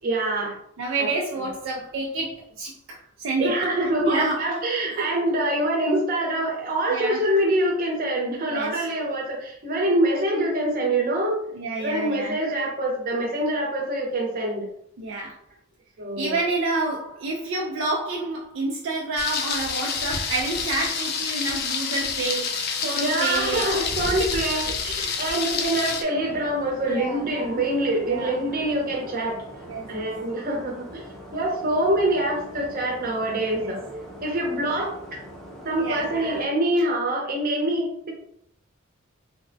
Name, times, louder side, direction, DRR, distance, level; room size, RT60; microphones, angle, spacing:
voice 1, 0.0-0.5 1.0-1.1 1.4-1.5 3.4-11.4 11.8-14.7 16.0-16.4 22.9-29.4 29.9-31.1 31.3-35.2 35.6-38.1, right 1 dB, 45° right, 0 dB, 0.7 m, -25 dB
voice 2, 0.8-3.6 4.0-4.5 5.0-5.1 6.9-7.2 8.5-8.9 11.5-12.4 15.0-15.4 16.2-23.7 24.2-24.3 25.0-25.1 26.8-27.3 28.0-28.4 29.6-30.1 33.5-33.8 35.8-36.1, right 2 dB, 65° right, -1 dB, 0.4 m, -29 dB
Thunder, 19.2-26.0, left 5 dB, 50° left, 0.4 m, -28 dB
sound 1, 26.1-36.5, equal, ahead, 0.5 m, -43 dB
3.2 x 2.1 x 2.6 m, 0.70 s
head